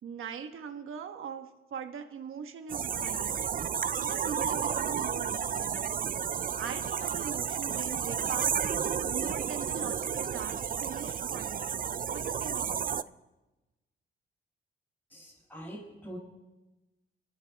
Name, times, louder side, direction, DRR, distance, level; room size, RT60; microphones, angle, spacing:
voice 1, 0.0-3.5 3.9-6.0 6.6-13.0, right 7 dB, 80° right, 6 dB, 1.2 m, -41 dB
sound 1, 2.7-13.0, right 7 dB, 45° right, 0.5 m, -32 dB
voice 2, 15.1-16.2, right 1 dB, 10° left, -8 dB, 6.6 m, -44 dB
28.0 x 13.5 x 3.4 m, 1.1 s
cardioid pair, 80°, 21 cm